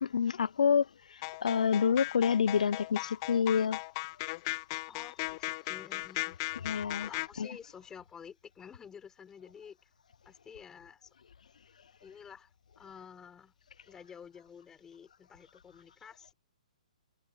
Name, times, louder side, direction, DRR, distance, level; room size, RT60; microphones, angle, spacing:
voice 1, 0.0-0.9 1.4-3.8 6.6-7.1 7.4-7.5, left 7 dB, 75° left, 0.3 m, -27 dB
sound 1, 1.2-7.3, left 25 dB, 35° left, 0.7 m, -37 dB
voice 2, 4.9-6.4 7.0-9.9 10.2-11.1 12.0-13.5 13.9-16.3, left 7 dB, 15° left, 4.0 m, -51 dB
hypercardioid pair, 130°, 4 cm